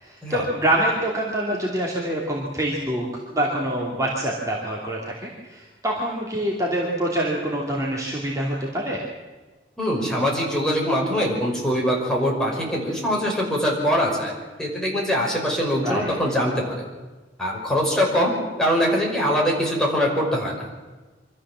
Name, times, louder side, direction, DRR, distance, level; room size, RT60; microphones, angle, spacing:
voice 1, 0.0-3.1 3.3-9.0 15.8-16.1, right 1 dB, 20° right, -3 dB, 2.8 m, -25 dB
voice 2, 9.8-16.6 17.4-18.3 18.6-20.6, equal, 5° left, -3 dB, 5.6 m, -23 dB
25.0 x 14.0 x 7.6 m, 1.2 s
head